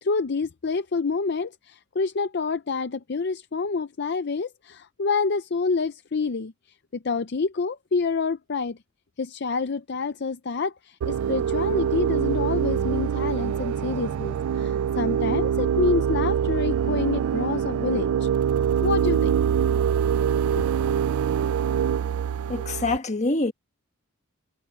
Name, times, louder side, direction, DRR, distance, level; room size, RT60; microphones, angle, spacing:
voice 1, 0.0-6.5 6.9-8.8 9.2-18.3 18.8-19.3 20.5-20.6 20.9-21.0, left 4 dB, 50° left, 0.5 m, -27 dB
sound 1, 11.0-23.0, right 8 dB, 85° right, 0.3 m, -24 dB
voice 2, 22.5-23.5, left 2 dB, 30° left, 1.3 m, -25 dB
head